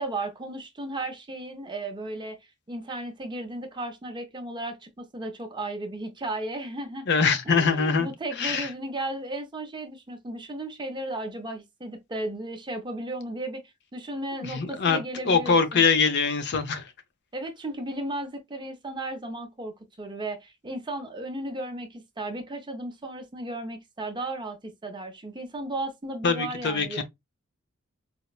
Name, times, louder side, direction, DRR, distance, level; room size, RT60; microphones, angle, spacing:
voice 1, 0.0-2.4 2.7-7.1 7.5-13.6 13.9-15.8 17.3-27.0, right 2 dB, 20° right, 0.6 m, -35 dB
voice 2, 7.1-8.1 8.4-8.7 14.4-16.8 26.2-27.0, left 5 dB, 55° left, 0.6 m, -23 dB
4.3 x 2.0 x 2.3 m
head